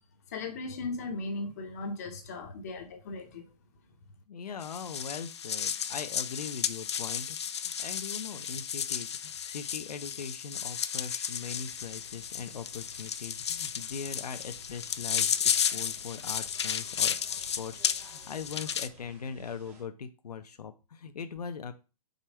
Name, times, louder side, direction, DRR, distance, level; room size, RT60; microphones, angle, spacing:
voice 1, 0.3-3.5, left 3 dB, 25° left, 0.8 m, -37 dB
voice 2, 4.3-7.4 7.6-21.7, left 6 dB, 75° left, 0.9 m, -41 dB
sound 1, 4.6-18.9, left 8 dB, 45° left, 0.5 m, -33 dB
sound 2, 11.4-19.8, right 2 dB, 10° right, 0.7 m, -55 dB
5.4 x 4.4 x 6.2 m
hypercardioid pair, 175°, 20 cm